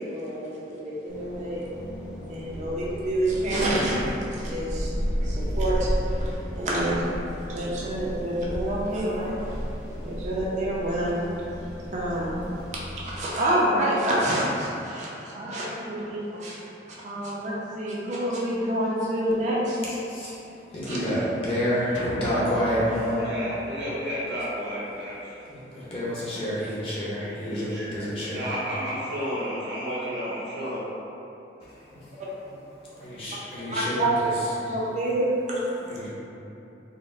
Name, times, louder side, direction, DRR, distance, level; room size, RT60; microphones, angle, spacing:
voice 1, 0.0-1.6 2.3-4.0 4.3-4.9 5.2-7.0 7.5-9.4 10.0-11.2 11.9-12.4 12.7-16.6 17.0-19.8 20.9-21.0 33.7-34.2 34.6-35.7, right 1 dB, 40° right, -6 dB, 0.4 m, -27 dB
sound 1, 1.1-13.3, equal, 65° left, 1.1 m, -33 dB
voice 2, 20.0-20.4 20.7-22.9 25.5-28.6 32.0-32.1 32.4-32.5 32.8-34.4 35.7-36.1, equal, 35° left, -9 dB, 0.6 m, -29 dB
sound 2, 21.9-24.4, left 2 dB, 90° left, 0.3 m, -37 dB
voice 3, 22.2-25.3 27.4-30.9 32.1-32.2, equal, 85° right, -9 dB, 1.0 m, -31 dB
3.9 x 2.0 x 2.5 m, 2.9 s
head